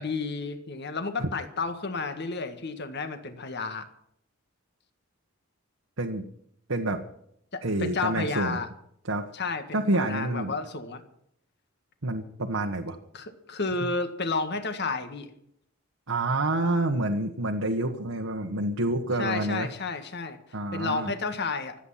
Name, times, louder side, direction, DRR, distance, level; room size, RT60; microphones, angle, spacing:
voice 1, 0.0-3.9 7.5-8.7 9.3-11.0 13.1-15.3 19.2-20.4 20.7-21.8, left 4 dB, 55° left, 9 dB, 1.8 m, -31 dB
voice 2, 6.7-7.0 7.6-8.6 9.1-9.3 9.7-10.5 12.0-13.0 16.1-19.7 20.5-21.1, right 2 dB, 80° right, 2 dB, 1.4 m, -28 dB
25.0 x 9.1 x 5.7 m, 0.70 s
head